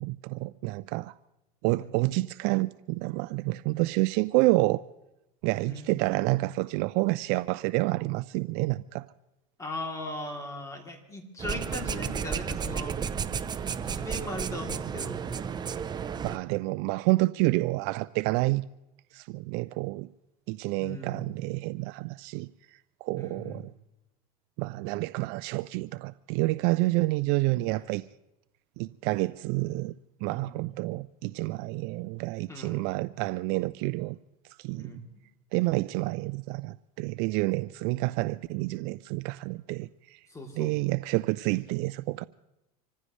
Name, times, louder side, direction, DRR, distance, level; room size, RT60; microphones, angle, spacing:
voice 1, 0.0-1.1 1.6-4.8 5.4-9.1 16.2-18.6 19.1-20.1 20.5-22.5 23.0-23.7 24.6-28.0 28.8-29.9 30.2-34.2 34.6-34.9 35.5-40.2 40.6-42.2, right 21 dB, 60° right, 0.4 m, -28 dB
voice 2, 5.6-6.0 9.6-13.0 13.8-15.2 20.8-21.3 23.2-23.7 27.7-27.9 30.3-30.6 32.5-32.8 34.8-35.2 40.3-40.8, left 1 dB, 15° left, 3.1 m, -39 dB
sound 1, 11.4-16.4, right 7 dB, 20° right, 0.7 m, -32 dB
26.0 x 15.0 x 3.2 m
supercardioid pair, 120°, 19 cm